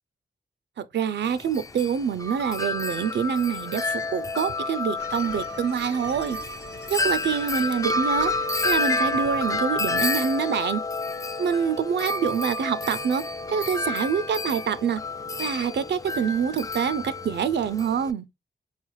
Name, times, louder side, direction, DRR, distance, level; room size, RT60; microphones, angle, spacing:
voice 1, 0.8-6.4 6.9-8.3 8.6-10.8 11.4-13.2 13.5-15.0 15.4-18.2, right 7 dB, 75° right, 0.4 m, -26 dB
Wind chime, 1.2-18.1, left 2 dB, 20° left, 0.3 m, -29 dB
sound 1, 5.0-10.2, left 2 dB, 70° left, 0.9 m, -44 dB
4.2 x 2.4 x 3.1 m
cardioid pair, 55°, 18 cm